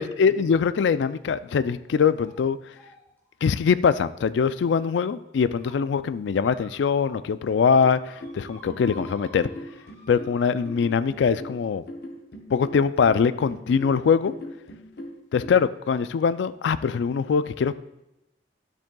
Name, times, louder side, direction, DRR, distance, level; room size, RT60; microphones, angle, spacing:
voice 1, 0.0-2.6 3.4-9.5 10.1-11.8 12.5-14.3 15.3-17.7, left 6 dB, 80° left, 14 dB, 0.3 m, -22 dB
sound 1, 0.9-1.2 1.5-1.9 2.1-2.4 2.7-4.7 5.2-5.7 6.3-7.3 7.6-11.2 12.2-12.3 13.0-13.3, equal, 15° left, 2.6 m, -52 dB
sound 2, 8.2-15.5, left 1 dB, 60° left, 0.9 m, -40 dB
12.0 x 7.4 x 2.3 m, 0.91 s
head